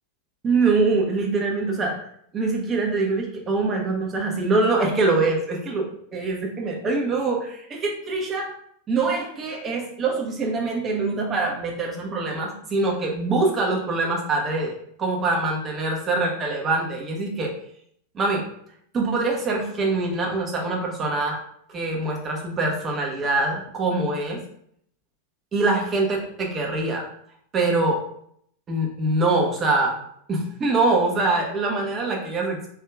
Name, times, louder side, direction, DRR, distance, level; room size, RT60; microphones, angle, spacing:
voice 1, 0.4-2.0 2.3-5.9 6.1-8.6 8.9-17.5 18.1-18.4 18.9-21.4 21.7-24.4 25.5-27.0 27.5-28.0 28.7-30.0 30.3-32.7, right 3 dB, 25° right, -1 dB, 1.0 m, -24 dB
4.6 x 2.8 x 2.3 m, 0.68 s
figure-of-eight pair, 90°, 0 cm